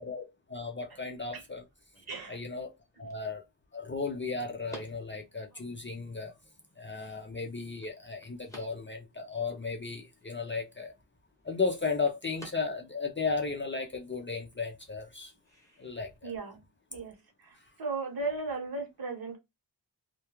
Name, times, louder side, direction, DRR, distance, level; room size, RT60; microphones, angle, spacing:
voice 1, 0.0-1.6 2.3-2.7 3.0-3.4 3.7-6.3 6.8-10.9 11.4-15.3 15.8-16.3, left 4 dB, 25° left, 0.4 m, -35 dB
sound 1, 0.7-16.2, left 1 dB, 5° left, 1.0 m, -57 dB
voice 2, 2.0-2.4 2.9-3.1 7.0-7.1 16.2-16.6 16.9-19.4, right 3 dB, 50° right, 1.0 m, -37 dB
2.2 x 2.2 x 2.9 m
wide cardioid pair, 90°, 45 cm